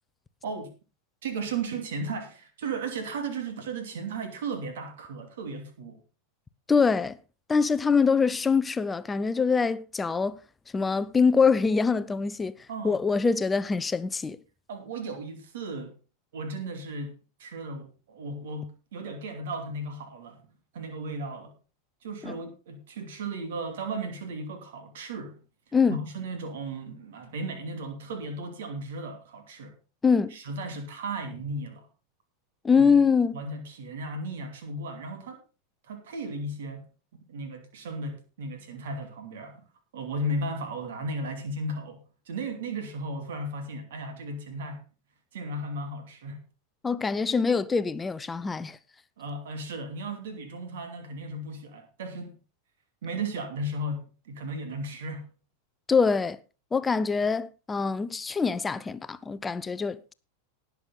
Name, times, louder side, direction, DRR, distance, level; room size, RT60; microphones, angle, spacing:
voice 1, 0.4-0.7 1.2-6.0 12.7-13.0 14.7-15.9 16.3-17.1 17.4-20.4 20.7-21.5 22.0-25.4 25.9-29.7 30.3-31.9 32.8-32.9 33.3-35.4 35.9-36.8 37.3-39.6 39.9-44.8 45.3-46.4 49.2-52.3 53.0-55.2, right 2 dB, 60° right, 2.7 m, -35 dB
voice 2, 6.7-7.2 7.5-10.4 10.7-12.5 12.8-14.4 22.2-22.4 25.7-26.0 30.0-30.3 32.6-33.4 46.8-48.8 55.9-56.4 56.7-60.1, left 5 dB, 15° left, 0.7 m, -24 dB
19.0 x 7.0 x 3.9 m
figure-of-eight pair, 90°, 0 cm